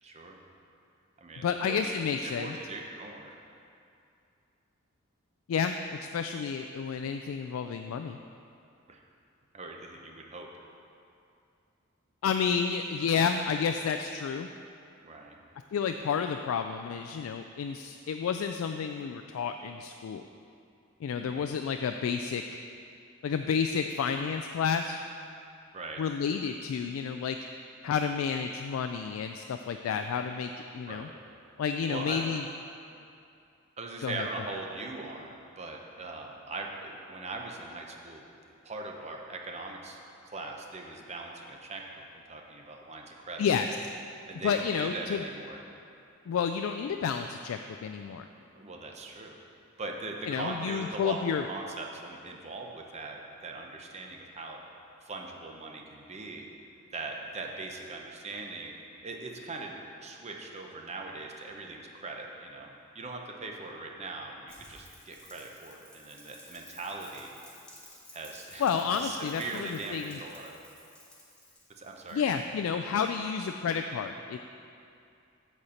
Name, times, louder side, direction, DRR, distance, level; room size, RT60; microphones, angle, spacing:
voice 1, 0.0-0.4 1.2-1.9 2.2-3.3 8.9-9.0 9.5-10.5 15.0-15.4 21.2-21.5 25.7-26.0 30.9-31.2 31.9-32.2 33.8-38.2 38.6-43.5 44.3-45.6 48.4-49.3 49.8-54.6 55.0-56.5 56.9-59.7 60.0-62.7 62.9-67.3 68.1-70.5 71.8-72.2, right 3 dB, 35° right, 1 dB, 0.8 m, -40 dB
voice 2, 1.4-2.6 5.5-8.2 12.2-14.5 15.7-20.2 21.0-22.4 23.2-25.0 26.0-27.4 27.8-31.1 31.6-32.4 34.0-34.3 43.4-43.7 44.4-45.2 46.3-48.2 50.3-51.4 68.6-70.2 72.1-74.4, left 6 dB, 80° left, 6 dB, 0.3 m, -30 dB
Rain, 64.5-72.6, left 1 dB, 5° left, 1.5 m, -54 dB
8.0 x 4.3 x 7.0 m, 2.5 s
head